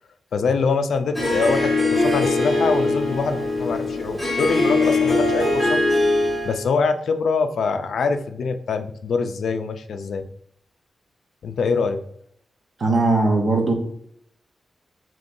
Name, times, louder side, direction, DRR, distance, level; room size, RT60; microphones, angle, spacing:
voice 1, 0.3-5.8 6.4-10.3 11.4-12.0, left 4 dB, 80° left, 7 dB, 0.4 m, -24 dB
Harp, 1.1-6.6, left 2 dB, 5° right, 1.5 m, -21 dB
voice 2, 12.8-13.7, right 2 dB, 45° right, 2 dB, 0.8 m, -19 dB
5.2 x 3.0 x 2.5 m, 0.68 s
wide cardioid pair, 175°, 0 cm